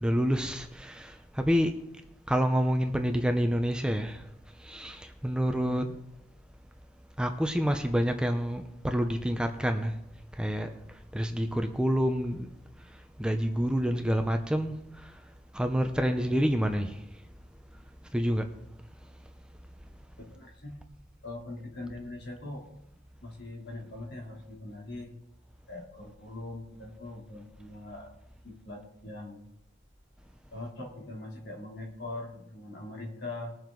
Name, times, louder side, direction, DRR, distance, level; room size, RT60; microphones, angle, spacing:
voice 1, 0.0-1.9 2.3-4.2 4.6-5.9 7.2-9.9 10.4-10.7 11.1-12.5 13.2-14.7 15.0-15.1 15.5-17.0 18.1-18.5, equal, 5° right, 6 dB, 0.7 m, -28 dB
voice 2, 5.6-5.9 20.2-20.8 21.2-22.7 23.2-25.2 25.7-28.2 28.4-29.5 30.5-33.6, left 2 dB, 60° left, 0 dB, 3.1 m, -42 dB
20.5 x 7.4 x 3.9 m, 0.83 s
head